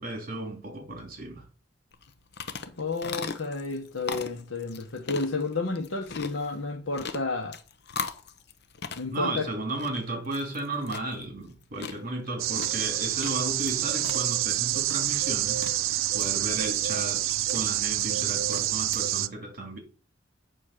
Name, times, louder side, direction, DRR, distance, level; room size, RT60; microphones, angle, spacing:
voice 1, 0.0-1.4 9.1-17.2 17.5-19.8, right 2 dB, 45° right, 2.7 m, -34 dB
sound 1, 1.9-19.0, left 5 dB, 55° left, 0.9 m, -41 dB
voice 2, 2.8-7.6 9.0-9.5, left 3 dB, 80° left, 1.2 m, -31 dB
sound 2, 12.4-19.3, right 13 dB, 85° right, 0.5 m, -27 dB
8.8 x 4.2 x 6.5 m
head